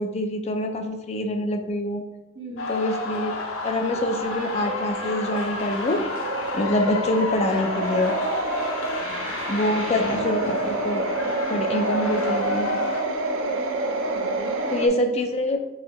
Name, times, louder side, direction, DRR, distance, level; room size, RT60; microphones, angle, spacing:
voice 1, 0.0-2.0 2.7-3.3 3.6-6.0 6.5-8.1 9.5-11.0 11.5-12.7 14.7-15.6, left 1 dB, 35° left, 5 dB, 0.4 m, -25 dB
voice 2, 2.3-2.7 9.0-10.1 14.1-15.3, right 1 dB, 60° right, -7 dB, 1.5 m, -39 dB
sound 1, 2.6-13.0, left 3 dB, 80° left, 0.5 m, -31 dB
sound 2, 4.0-14.9, right 2 dB, 80° right, 0.4 m, -29 dB
3.9 x 2.9 x 3.0 m, 1.0 s
head